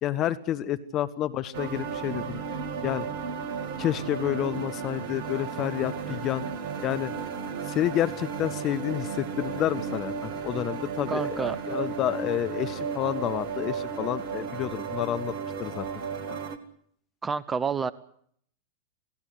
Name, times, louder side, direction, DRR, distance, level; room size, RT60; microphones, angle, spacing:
voice 1, 0.0-2.4 2.8-3.1 3.8-6.4 6.8-7.1 7.7-15.3 15.6-15.9 16.3-16.4, left 12 dB, 35° left, 13 dB, 1.1 m, -29 dB
sound 1, 1.5-16.6, right 6 dB, 50° right, 2.4 m, -34 dB
voice 2, 11.1-11.6 17.2-17.9, right 5 dB, 15° right, 18 dB, 1.1 m, -28 dB
28.0 x 18.0 x 8.1 m, 0.65 s
figure-of-eight pair, 90°, 0 cm